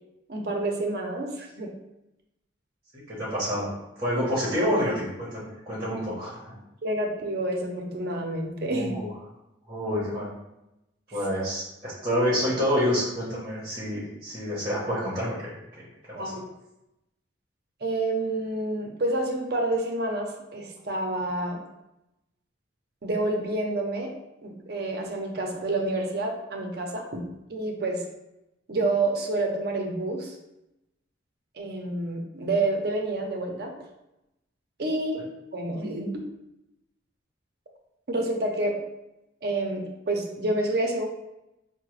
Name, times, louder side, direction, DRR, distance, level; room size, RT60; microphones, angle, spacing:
voice 1, 0.3-1.7 6.8-8.9 16.2-16.5 17.8-21.6 23.0-24.1 24.4-27.2 27.5-28.0 28.7-30.3 31.5-33.7 34.8-35.2 35.5-36.2 38.1-38.8 39.4-41.1, right 2 dB, 55° right, 2 dB, 0.6 m, -28 dB
voice 2, 3.1-6.6 8.7-9.1 9.7-10.3 11.1-15.5 16.2-16.4, equal, 25° right, -7 dB, 1.0 m, -28 dB
4.6 x 2.1 x 3.1 m, 0.89 s
head